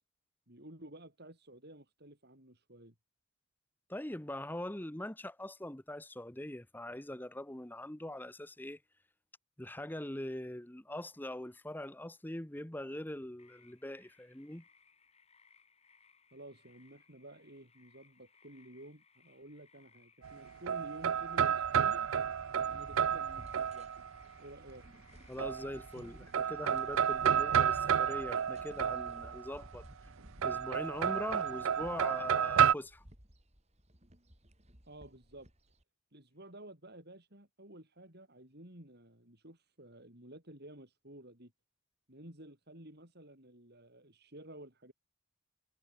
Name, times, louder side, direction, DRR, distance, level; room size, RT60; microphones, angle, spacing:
voice 1, 0.5-2.9 16.3-22.1 22.7-23.9 24.4-24.9 34.9-35.5 36.1-41.5 42.1-44.9, right 1 dB, 50° right, 5.9 m, -53 dB
voice 2, 3.9-8.8 9.6-14.6 25.3-29.9 30.4-33.0, left 1 dB, 10° left, 0.8 m, -42 dB
sound 1, 13.4-26.4, left 5 dB, 30° left, 4.3 m, -67 dB
sound 2, 20.2-24.2 25.4-26.0 26.3-29.5 30.4-32.7, right 8 dB, 70° right, 0.5 m, -31 dB
sound 3, 21.6-35.8, equal, 30° right, 6.0 m, -56 dB
head